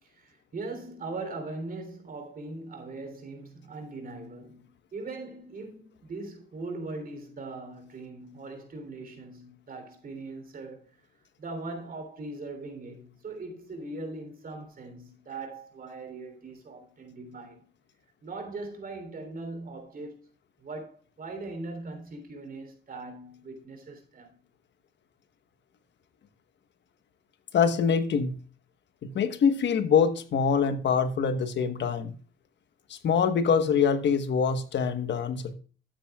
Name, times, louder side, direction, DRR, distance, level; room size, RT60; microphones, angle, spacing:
voice 1, 0.0-10.9 11.4-17.6 18.2-20.2 20.6-24.4, right 3 dB, 45° right, 3.4 m, -40 dB
voice 2, 27.5-28.4 29.0-32.1 32.9-35.5, left 6 dB, 65° left, 1.3 m, -24 dB
13.0 x 9.1 x 2.4 m
cardioid pair, 90°, 20 cm